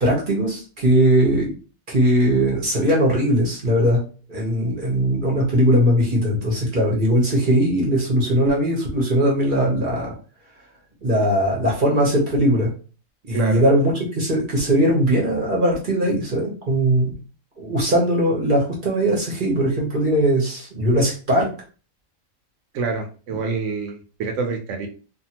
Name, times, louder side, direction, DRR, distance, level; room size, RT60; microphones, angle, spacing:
voice 1, 0.0-1.5 1.9-4.0 4.3-10.1 11.0-12.7 13.3-17.1 17.6-21.5, equal, 40° right, -3 dB, 0.9 m, -19 dB
voice 2, 13.3-13.6 22.7-24.9, right 4 dB, 65° right, 3 dB, 1.0 m, -27 dB
2.7 x 2.5 x 2.8 m, 0.36 s
omnidirectional pair, 1.4 m